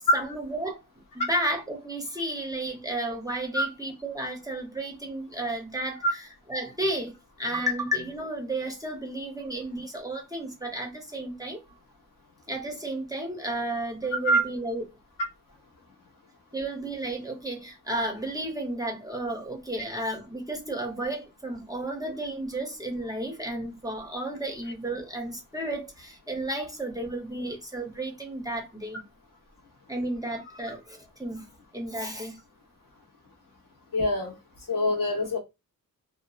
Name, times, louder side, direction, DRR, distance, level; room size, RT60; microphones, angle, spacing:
voice 1, 0.1-0.8 1.1-11.6 12.5-14.8 16.5-29.0 29.9-31.5 31.7-32.4, right 1 dB, 10° right, 0.6 m, -32 dB
voice 2, 33.9-34.3 34.7-35.4, equal, 65° left, 0.9 m, -24 dB
2.7 x 2.2 x 2.3 m
wide cardioid pair, 130°, 35 cm